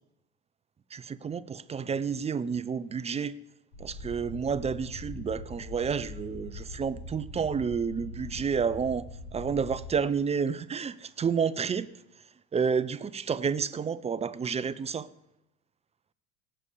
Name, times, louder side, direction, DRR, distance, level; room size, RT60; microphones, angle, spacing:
voice 1, 0.9-3.4 3.8-11.9 12.5-15.1, right 6 dB, 15° right, 17 dB, 0.4 m, -30 dB
sound 1, 3.7-9.9, left 2 dB, 65° left, 2.9 m, -42 dB
17.5 x 6.7 x 4.9 m, 0.87 s
hypercardioid pair, 70°, 43 cm